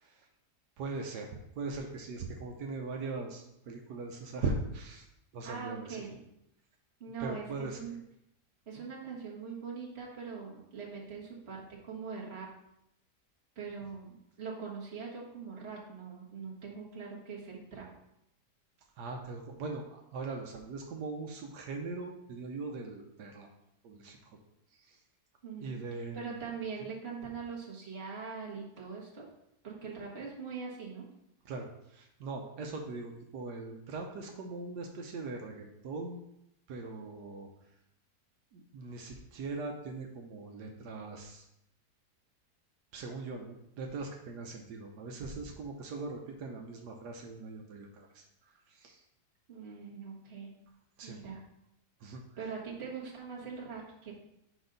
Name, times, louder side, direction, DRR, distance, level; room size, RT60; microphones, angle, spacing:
voice 1, 0.8-1.3 1.6-5.0 5.3-6.0 7.2-7.9 19.0-23.5 23.8-24.4 24.7-25.0 25.6-26.4 31.4-36.2 36.7-37.5 38.5-41.4 42.9-49.0 51.0-51.2 52.0-52.2, right 3 dB, 85° right, 2 dB, 1.4 m, -40 dB
voice 2, 5.4-6.2 7.0-8.0 8.7-12.5 13.6-17.9 25.4-25.8 26.1-29.2 29.6-31.1 49.5-50.5 51.0-51.4 52.4-54.1, right 5 dB, 40° right, -4 dB, 1.7 m, -42 dB
6.1 x 5.3 x 3.9 m, 0.82 s
omnidirectional pair, 1.8 m